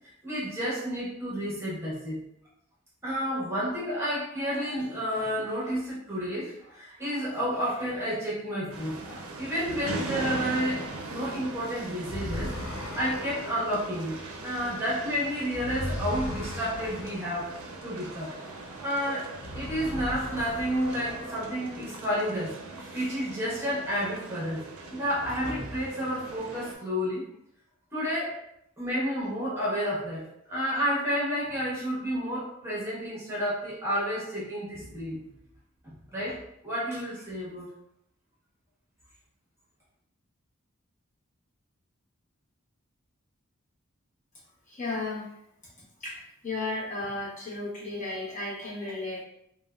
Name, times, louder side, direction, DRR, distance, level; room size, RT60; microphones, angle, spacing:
voice 1, 0.2-2.2 3.0-10.8 11.1-17.5 17.8-18.3 18.8-19.3 19.5-27.2 27.9-28.4 28.8-35.2 36.1-37.7, equal, 10° right, -7 dB, 0.8 m, -31 dB
sound 1, 8.7-26.8, right 2 dB, 85° right, 0.4 m, -40 dB
sound 2, 12.0-18.9 19.3-22.0, left 1 dB, 75° left, 0.5 m, -39 dB
voice 2, 44.7-45.4 46.0-49.2, left 2 dB, 35° left, -6 dB, 0.8 m, -34 dB
3.3 x 2.1 x 2.3 m, 0.77 s
head